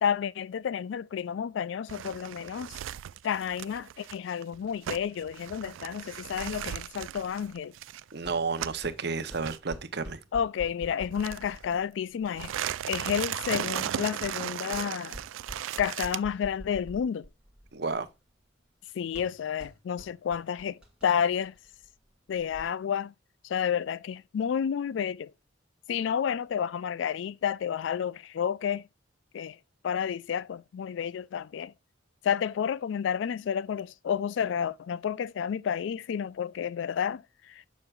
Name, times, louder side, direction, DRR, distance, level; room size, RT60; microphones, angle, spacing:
voice 1, 0.0-2.8 3.2-7.7 10.3-12.5 12.9-15.2 15.8-17.3 18.9-21.5 22.3-23.1 23.4-25.3 25.9-28.8 29.3-29.6 29.8-31.7 32.2-37.7, left 8 dB, 65° left, 0.3 m, -30 dB
sound 1, 1.9-8.9 9.3-9.6 11.1-11.8 12.3-16.2, right 11 dB, 80° right, 0.3 m, -36 dB
voice 2, 8.1-10.2 17.7-18.1, right 4 dB, 55° right, 0.7 m, -31 dB
sound 2, 8.2-22.6, equal, 5° right, 1.5 m, -49 dB
7.2 x 6.8 x 2.3 m
head